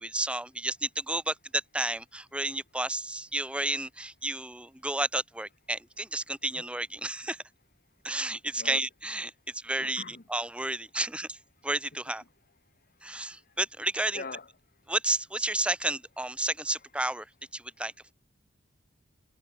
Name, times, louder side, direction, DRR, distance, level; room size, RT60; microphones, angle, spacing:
voice 1, 0.0-7.4 8.0-11.4 11.6-12.2 13.0-14.2 14.9-17.2 17.5-18.1, right 2 dB, 5° right, 0.8 m, -31 dB
voice 2, 9.8-10.2 14.1-14.5, left 3 dB, 45° left, 1.4 m, -41 dB
head